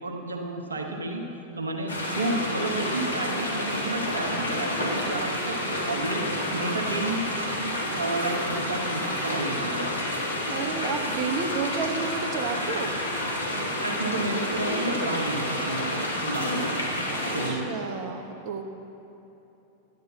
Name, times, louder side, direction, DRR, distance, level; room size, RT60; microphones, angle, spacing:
voice 1, 0.0-1.2 1.5-6.2 6.5-7.2 7.6-9.9 13.8-16.0 16.2-16.7 17.3-17.8, right 2 dB, 80° right, 2 dB, 1.0 m, -31 dB
sound 1, 1.9-17.5, left 1 dB, 80° left, 1.6 m, -29 dB
voice 2, 10.5-13.0 17.1-18.7, right 4 dB, 45° right, 4 dB, 1.0 m, -32 dB
10.5 x 8.0 x 7.0 m, 3.0 s
figure-of-eight pair, 95°, 0 cm